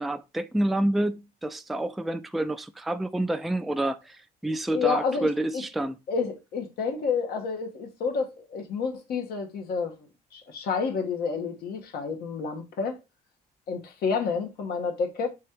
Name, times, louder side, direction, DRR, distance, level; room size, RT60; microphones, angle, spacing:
voice 1, 0.0-6.0, right 1 dB, ahead, 0.3 m, -28 dB
voice 2, 4.7-5.6 6.1-9.9 10.3-13.0 13.7-15.3, left 5 dB, 65° left, 1.3 m, -29 dB
3.7 x 3.2 x 4.4 m
cardioid pair, 110°, 17 cm